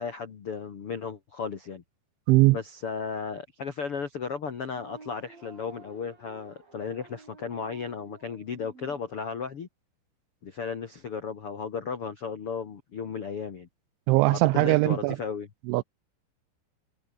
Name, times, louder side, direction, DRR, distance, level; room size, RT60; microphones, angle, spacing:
voice 1, 0.0-1.8 2.5-9.7 10.4-13.7 14.3-15.5, left 5 dB, 90° left, 1.2 m, -35 dB
voice 2, 2.3-2.6 14.1-15.2 15.7-15.8, right 22 dB, 85° right, 2.8 m, -20 dB
sound 1, 4.6-9.0, right 4 dB, 45° right, 9.4 m, -51 dB
omnidirectional pair, 5.8 m